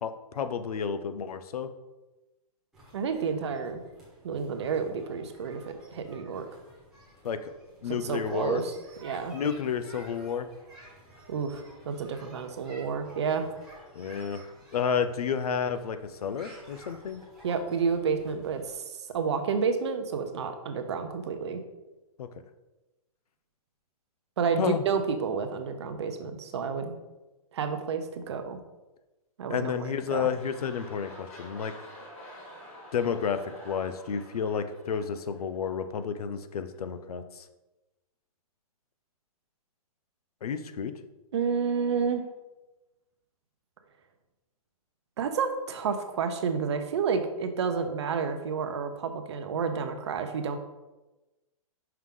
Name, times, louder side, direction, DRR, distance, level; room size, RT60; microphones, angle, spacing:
voice 1, 0.0-1.7 7.2-7.5 7.8-8.6 9.3-10.5 13.9-14.4 14.7-17.2 22.2-22.3 24.6-24.8 29.5-31.7 32.9-37.4 40.4-40.9, left 7 dB, 90° left, 10 dB, 0.7 m, -31 dB
sound 1, 2.7-18.7, right 1 dB, ahead, 1.2 m, -53 dB
voice 2, 2.9-3.8 4.2-6.5 7.9-8.7 9.0-9.4 11.3-13.5 17.4-18.8 19.1-21.6 24.4-26.9 27.5-28.6 29.4-30.3 41.3-42.2 45.2-50.6, right 6 dB, 50° right, 7 dB, 0.7 m, -30 dB
sound 2, 29.8-36.1 36.7-36.8, equal, 20° left, 1.5 m, -48 dB
5.8 x 4.7 x 3.7 m, 1.1 s
hypercardioid pair, 175°, 19 cm